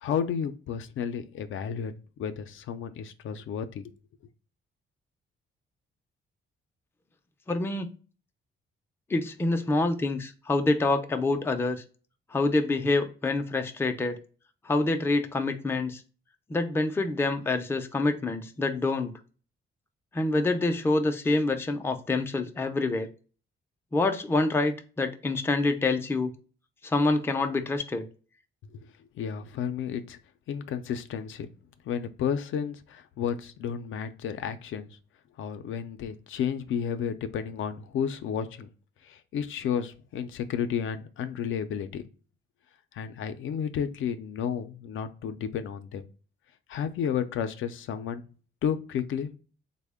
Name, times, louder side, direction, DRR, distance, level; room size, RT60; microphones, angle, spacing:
voice 1, 0.0-1.9 2.2-3.9 28.7-28.8 29.2-30.2 30.5-31.5 31.9-35.0 35.4-38.7 39.0-42.0 42.9-46.0 46.7-48.3 48.6-49.4, left 8 dB, 70° left, 9 dB, 0.4 m, -32 dB
voice 2, 7.5-7.9 9.1-11.8 12.3-14.2 14.6-16.0 16.5-19.1 20.1-23.1 23.9-26.3 26.8-28.0, left 2 dB, 10° left, 6 dB, 0.4 m, -26 dB
3.5 x 2.1 x 3.3 m, 0.38 s
cardioid pair, 120°, 21 cm